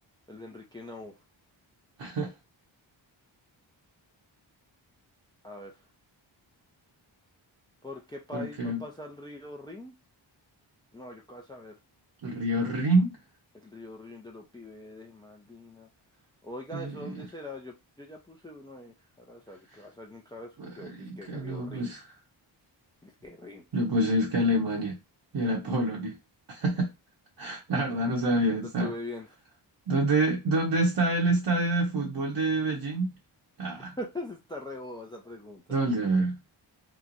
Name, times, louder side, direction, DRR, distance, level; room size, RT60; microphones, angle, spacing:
voice 1, 0.3-1.1 5.4-5.7 7.8-9.9 10.9-11.8 13.6-15.9 16.4-20.5 20.8-21.9 23.0-23.6 28.6-29.3 33.8-35.6, left 1 dB, 10° left, 0.5 m, -42 dB
voice 2, 2.0-2.3 8.3-8.8 12.2-13.1 16.7-17.2 20.6-22.1 23.7-25.0 25.3-26.2 26.5-26.9 27.4-28.9 29.9-33.1 33.6-33.9 35.7-36.4, right 1 dB, 60° right, 0.9 m, -27 dB
3.0 x 2.2 x 2.5 m
cardioid pair, 55°, 48 cm